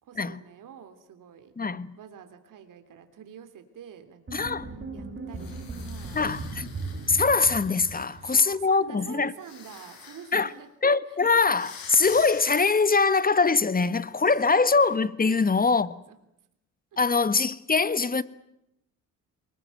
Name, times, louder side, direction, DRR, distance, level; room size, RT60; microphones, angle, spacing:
voice 1, 0.0-1.5 2.0-4.5 4.9-6.2 7.9-10.7 11.1-11.2 14.2-14.5 15.2-16.2 16.9-17.1, right 8 dB, 65° right, 3.3 m, -47 dB
voice 2, 1.6-2.0 4.3-4.7 6.1-6.7 7.1-9.3 10.3-10.5 10.8-15.9 17.0-18.2, left 4 dB, 25° left, 1.5 m, -23 dB
sound 1, 4.3-8.5, right 3 dB, 35° right, 5.4 m, -37 dB
sound 2, 5.3-8.3 9.4-10.5 11.4-13.1, left 6 dB, 85° left, 5.4 m, -46 dB
23.5 x 21.0 x 9.2 m
supercardioid pair, 65°, 34 cm